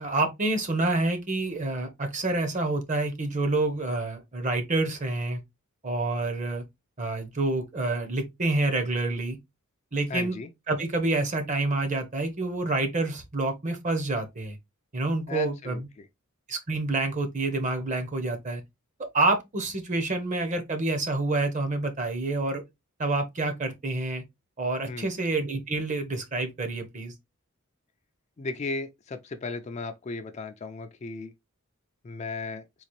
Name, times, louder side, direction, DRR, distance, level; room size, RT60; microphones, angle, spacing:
voice 1, 0.0-5.4 5.8-6.6 7.0-9.4 9.9-10.3 10.7-14.6 14.9-15.9 16.5-18.6 19.1-22.6 23.0-24.2 24.6-27.1, right 2 dB, 35° right, 0.8 m, -28 dB
voice 2, 10.1-10.5 15.3-16.1 24.9-25.1 28.4-31.3 32.0-32.6, left 3 dB, 30° left, 0.4 m, -35 dB
3.9 x 2.4 x 3.0 m
head